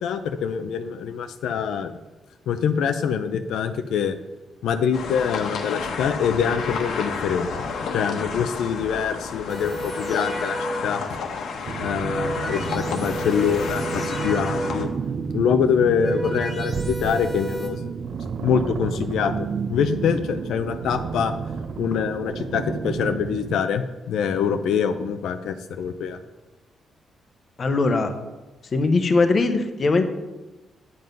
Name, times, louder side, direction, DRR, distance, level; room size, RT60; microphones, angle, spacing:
voice 1, 0.0-1.9 2.5-4.2 4.6-7.5 7.8-10.6 10.8-11.0 11.8-14.9 15.3-17.9 18.4-21.3 21.8-26.2, left 7 dB, 85° left, 8 dB, 0.6 m, -24 dB
sound 1, 4.9-14.9, left 5 dB, 70° left, 1.2 m, -31 dB
sound 2, 9.5-11.1 11.8-15.0 15.7-17.7, right 1 dB, ahead, 1.8 m, -32 dB
sound 3, 11.6-23.6, right 6 dB, 45° right, 0.6 m, -31 dB
voice 2, 27.6-28.1 28.7-30.0, left 3 dB, 30° left, 7 dB, 0.9 m, -20 dB
9.5 x 7.8 x 5.3 m, 1.1 s
cardioid pair, 165°, 0 cm